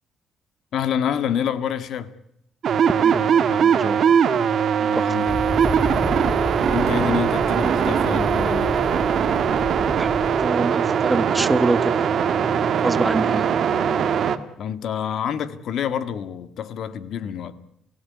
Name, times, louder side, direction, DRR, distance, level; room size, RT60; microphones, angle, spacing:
voice 1, 0.7-2.1 4.9-5.4 6.7-8.8 14.6-17.5, left 8 dB, 70° left, 1.8 m, -27 dB
sound 1, 2.6-14.4, right 7 dB, 60° right, 1.8 m, -21 dB
voice 2, 3.0-4.0 4.9-5.4 9.7-10.1 10.4-12.2 12.8-13.6, right 2 dB, 20° right, 1.3 m, -26 dB
sound 2, 5.3-10.5, left 1 dB, 15° left, 2.8 m, -31 dB
27.5 x 16.5 x 9.5 m
cardioid pair, 90°, 0 cm